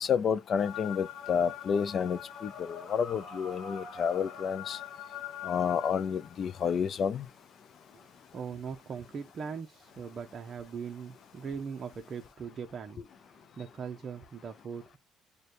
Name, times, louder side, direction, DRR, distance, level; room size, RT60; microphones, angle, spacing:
voice 1, 0.0-4.8 5.4-7.2, left 7 dB, 45° left, 0.4 m, -30 dB
sound 1, 0.6-12.3, left 7 dB, 65° left, 1.0 m, -46 dB
voice 2, 8.3-13.0 13.6-15.0, right 6 dB, 40° right, 0.6 m, -40 dB
6.4 x 2.2 x 2.5 m
cardioid pair, 130°, 0 cm